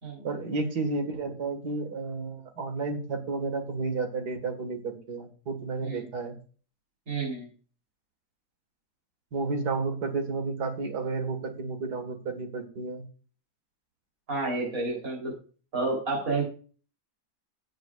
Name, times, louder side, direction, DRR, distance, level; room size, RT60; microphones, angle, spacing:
voice 1, 0.2-6.4 9.3-13.0, right 3 dB, 80° right, 6 dB, 2.3 m, -32 dB
voice 2, 7.1-7.5 14.3-15.3 15.7-16.4, right 3 dB, 60° right, -3 dB, 4.0 m, -30 dB
16.5 x 8.0 x 2.4 m, 0.39 s
omnidirectional pair, 1.7 m